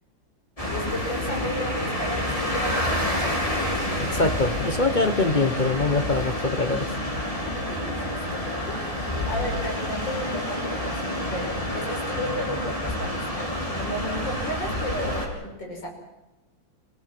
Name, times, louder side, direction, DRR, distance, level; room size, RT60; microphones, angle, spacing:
sound 1, 0.6-15.3, left 1 dB, 15° left, 4.3 m, -28 dB
voice 1, 0.7-3.8 7.5-8.4 8.7-8.8 9.3-15.9, left 1 dB, 65° left, 1 dB, 6.5 m, -34 dB
voice 2, 4.1-6.9, left 3 dB, 35° left, 8 dB, 0.8 m, -23 dB
28.0 x 17.0 x 6.1 m, 1.0 s
omnidirectional pair, 2.1 m